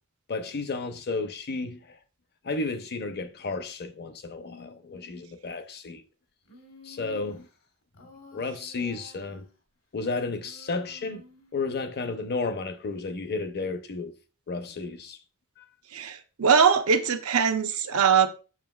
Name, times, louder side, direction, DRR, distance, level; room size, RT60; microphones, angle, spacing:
voice 1, 0.3-2.0 2.4-6.0 6.8-7.5 8.3-9.5 9.9-11.2 11.5-14.1 14.5-15.2 15.6-15.7, left 3 dB, 50° left, 0.7 m, -32 dB
Human voice, 6.5-7.4 8.0-9.5 10.4-11.7, left 2 dB, 75° left, 1.3 m, -51 dB
voice 2, 15.9-18.3, right 6 dB, 80° right, 0.7 m, -22 dB
7.4 x 5.5 x 2.3 m
head